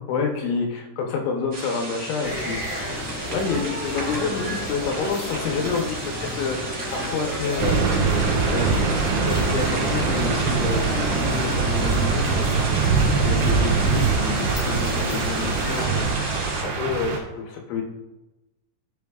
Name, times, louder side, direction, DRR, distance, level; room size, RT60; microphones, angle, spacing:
voice 1, 0.0-2.6 3.3-6.6 6.9-7.8 8.5-12.7 13.1-16.2 16.6-17.8, left 5 dB, 75° left, 1 dB, 3.0 m, -28 dB
sound 1, 1.5-16.6, right 2 dB, 35° right, 1.2 m, -33 dB
sound 2, 2.2-15.8, equal, 20° left, 1.4 m, -32 dB
sound 3, 7.6-17.2, right 5 dB, 75° right, 3.8 m, -23 dB
13.5 x 7.2 x 2.4 m, 1.0 s
omnidirectional pair, 5.7 m